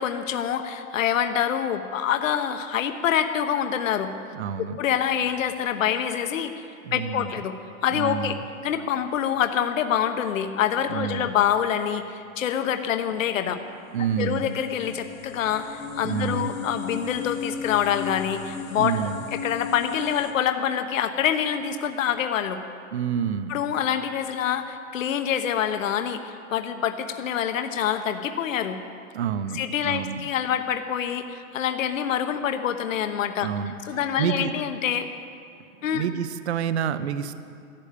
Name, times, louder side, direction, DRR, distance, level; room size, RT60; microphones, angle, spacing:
voice 1, 0.0-4.1 4.6-6.6 6.9-7.5 7.8-8.4 8.6-13.6 14.2-22.6 23.5-28.8 29.5-33.5 33.9-35.1 35.8-36.1, left 9 dB, 65° left, 8 dB, 1.0 m, -26 dB
voice 2, 4.3-4.8 6.8-7.4 7.9-8.4 10.9-11.3 13.5-13.6 13.9-14.5 16.0-16.5 18.7-19.2 22.9-23.6 29.1-30.2 33.4-33.7 34.2-34.5 35.9-37.4, right 8 dB, 50° right, 12 dB, 0.7 m, -28 dB
sound 1, 13.5-20.3, left 5 dB, 20° left, 0.8 m, -36 dB
14.0 x 12.0 x 8.5 m, 2.5 s
hypercardioid pair, 180°, 42 cm